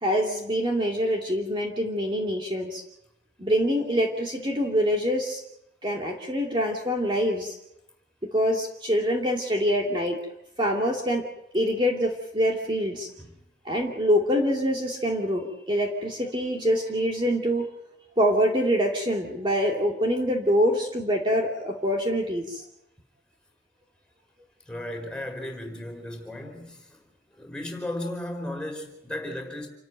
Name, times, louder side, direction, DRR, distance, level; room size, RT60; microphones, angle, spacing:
voice 1, 0.0-2.8 3.4-5.4 5.8-7.6 8.2-10.2 10.6-11.2 11.5-13.1 13.6-17.7 18.2-22.6, equal, 25° right, 2.7 m, -25 dB
voice 2, 24.7-27.0 27.3-29.7, left 1 dB, 5° left, 4.8 m, -35 dB
28.5 x 13.5 x 9.2 m
head